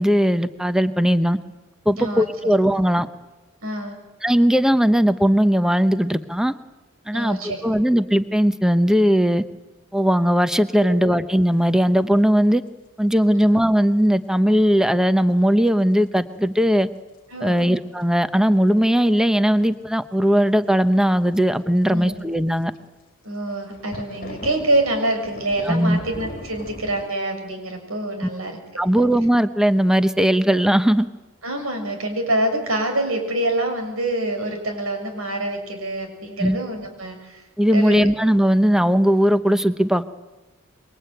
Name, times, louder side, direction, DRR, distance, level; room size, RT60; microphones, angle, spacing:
voice 1, 0.0-1.4 1.9-3.1 4.2-6.5 7.1-9.4 9.9-12.6 13.0-16.9 17.4-22.7 25.7-26.0 28.2-28.3 28.8-31.1 36.4-36.6 37.6-40.0, equal, 5° right, 11 dB, 0.9 m, -18 dB
voice 2, 3.6-4.0 7.1-7.8 10.8-11.0 13.3-13.5 17.3-17.7 21.9-22.2 23.2-28.6 28.8-29.1 30.5-30.6 31.4-37.4 37.7-38.1, right 1 dB, 80° right, 5 dB, 6.6 m, -26 dB
sound 1, 15.7-15.8 18.4-18.5 21.1-21.4 22.7-22.8 23.4-27.1, left 1 dB, 40° left, 1.9 m, -38 dB
26.5 x 23.5 x 9.2 m, 1.1 s
head